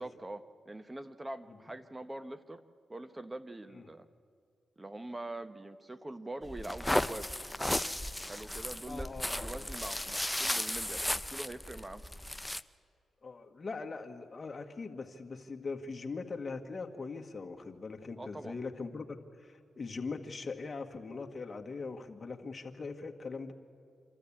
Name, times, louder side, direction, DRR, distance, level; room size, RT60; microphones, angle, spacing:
voice 1, 0.0-2.6 2.9-4.1 4.8-7.3 8.2-12.0 18.2-18.6, right 1 dB, 20° right, 9 dB, 0.9 m, -44 dB
sound 1, 6.4-12.6, left 1 dB, 10° left, 0.6 m, -35 dB
voice 2, 8.9-10.0 13.2-23.5, left 4 dB, 40° left, 3 dB, 1.8 m, -41 dB
26.5 x 13.0 x 8.7 m, 2.2 s
supercardioid pair, 55°, 0 cm